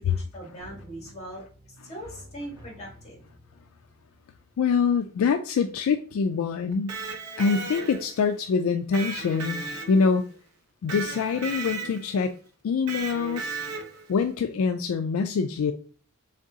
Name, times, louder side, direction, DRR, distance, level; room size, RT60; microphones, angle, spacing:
voice 1, 0.0-1.5 1.8-3.2, right 1 dB, 30° left, 1.5 m, -40 dB
sound 1, 0.6-5.3 5.6-5.7, left 1 dB, 20° right, 0.9 m, -51 dB
voice 2, 4.6-7.0 7.4-9.6 9.9-10.2 10.8-12.3 12.6-13.6 14.1-15.7, left 5 dB, 70° left, 0.3 m, -25 dB
Electric guitar, 6.7-8.2 8.9-10.3 10.9-12.2 12.9-14.1, right 4 dB, 80° right, 0.7 m, -35 dB
3.8 x 3.6 x 2.7 m
head